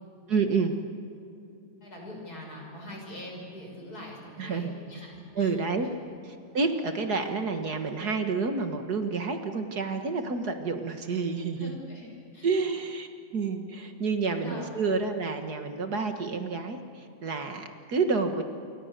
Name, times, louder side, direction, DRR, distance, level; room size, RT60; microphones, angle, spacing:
voice 1, 0.3-0.7 4.4-4.8 5.4-5.9 6.5-11.7 12.4-13.1 13.3-18.4, right 4 dB, 60° right, 6 dB, 2.1 m, -29 dB
voice 2, 1.8-5.5 5.8-5.9 11.6-12.5 14.4-14.7, left 1 dB, 55° left, 0 dB, 6.8 m, -43 dB
28.0 x 24.0 x 6.7 m, 2.7 s
omnidirectional pair, 2.0 m